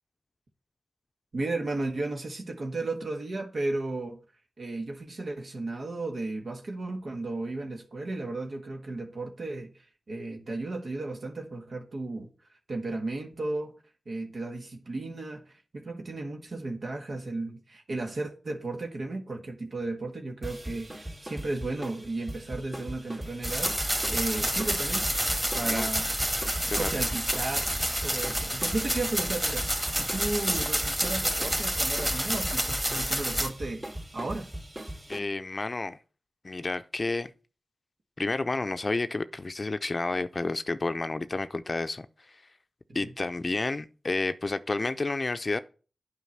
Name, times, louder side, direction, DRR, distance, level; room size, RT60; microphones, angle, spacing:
voice 1, 1.3-4.2 4.6-12.3 12.7-13.7 14.0-25.1 25.5-26.2 26.7-27.7 28.0-33.8 34.1-34.5 42.9-43.1, right 2 dB, 70° right, 1.5 m, -34 dB
sound 1, 20.4-35.2, right 1 dB, 35° right, 2.6 m, -40 dB
sound 2, 23.4-33.5, equal, 15° right, 2.0 m, -29 dB
voice 2, 35.1-36.0 36.4-37.3 38.2-42.1 42.9-45.6, left 3 dB, 45° left, 0.5 m, -30 dB
8.2 x 5.0 x 7.2 m
cardioid pair, 40°, 0 cm